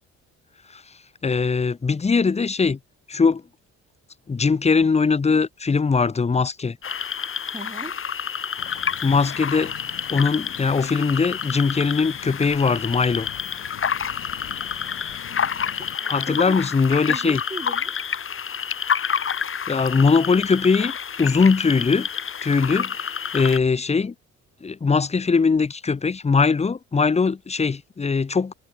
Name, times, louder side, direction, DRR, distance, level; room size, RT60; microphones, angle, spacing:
voice 1, 1.2-2.8 3.1-3.4 4.3-6.8 9.0-9.7 10.1-13.3 16.1-17.4 19.7-20.9 21.2-22.1 22.4-24.1 24.6-28.5, left 4 dB, 20° left, 0.9 m, -21 dB
sound 1, 6.8-23.6, left 7 dB, 45° left, 2.3 m, -29 dB
voice 2, 7.5-8.0 14.5-16.6 17.1-17.9, right 2 dB, 15° right, 6.8 m, -39 dB
sound 2, 8.6-16.0, left 15 dB, 90° left, 7.2 m, -43 dB
cardioid pair, 90°, 30 cm